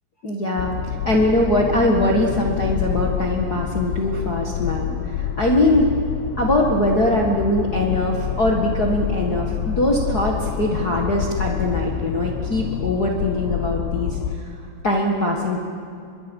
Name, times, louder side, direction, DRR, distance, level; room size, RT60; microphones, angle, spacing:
voice 1, 0.2-5.9 6.4-14.2 14.8-15.6, left 1 dB, 70° left, -1 dB, 0.9 m, -21 dB
sound 1, 0.6-14.4, left 9 dB, 90° left, 3.0 m, -27 dB
25.0 x 22.5 x 5.4 m, 2.5 s
omnidirectional pair, 4.7 m